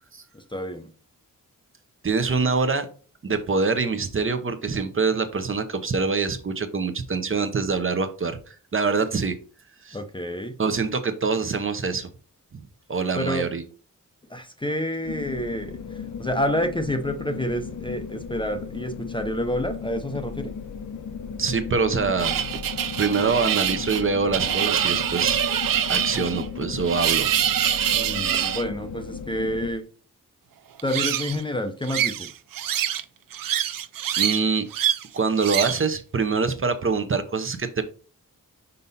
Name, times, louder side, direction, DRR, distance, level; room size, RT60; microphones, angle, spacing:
voice 1, 0.3-0.9 9.9-10.6 13.2-13.5 14.3-20.5 27.9-29.9 30.8-32.3, left 1 dB, 15° left, 7 dB, 0.6 m, -29 dB
voice 2, 2.0-2.9 3.2-9.4 9.8-10.0 10.6-12.1 12.5-12.6 12.9-13.6 21.4-22.4 23.0-25.4 25.9-27.3 34.1-34.6 35.1-37.8, right 4 dB, 40° right, 8 dB, 0.8 m, -25 dB
sound 1, 15.0-29.7, left 6 dB, 60° left, 0.7 m, -36 dB
sound 2, 22.2-28.6 30.8-31.4 31.9-33.0 33.3-34.4 34.7-35.0 35.4-35.8, right 10 dB, 80° right, 0.5 m, -25 dB
5.5 x 5.3 x 4.1 m, 0.39 s
wide cardioid pair, 170°, 33 cm